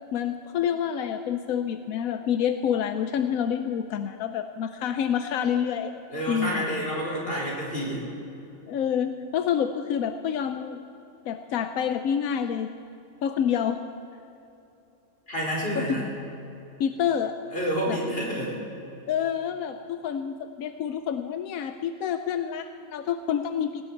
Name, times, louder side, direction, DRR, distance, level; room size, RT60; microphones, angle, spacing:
voice 1, 0.1-5.9 6.3-6.6 8.7-10.8 11.3-12.7 13.2-13.8 16.8-17.3 17.9-18.0 19.1-23.8, left 8 dB, 90° left, 9 dB, 1.1 m, -28 dB
voice 2, 6.1-8.0 15.3-16.1 17.5-18.5, equal, 40° left, -3 dB, 4.4 m, -29 dB
18.0 x 17.5 x 4.5 m, 2.9 s
omnidirectional pair, 1.4 m